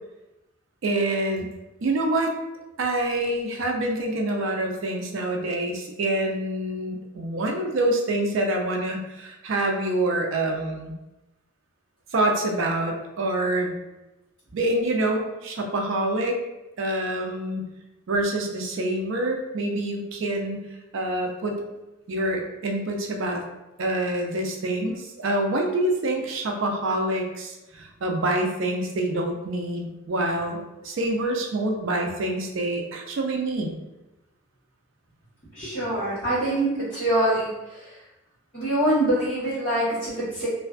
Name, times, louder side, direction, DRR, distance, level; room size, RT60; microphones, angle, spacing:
voice 1, 0.8-1.5 1.8-2.4 2.8-10.9 12.1-13.8 14.5-16.4 16.8-17.6 18.1-20.7 20.9-21.6 22.1-23.4 23.8-33.7, right 1 dB, 70° right, 2 dB, 0.4 m, -26 dB
voice 2, 35.5-37.5 38.5-40.5, right 1 dB, 30° left, -14 dB, 1.0 m, -24 dB
2.5 x 2.2 x 2.3 m, 0.99 s
head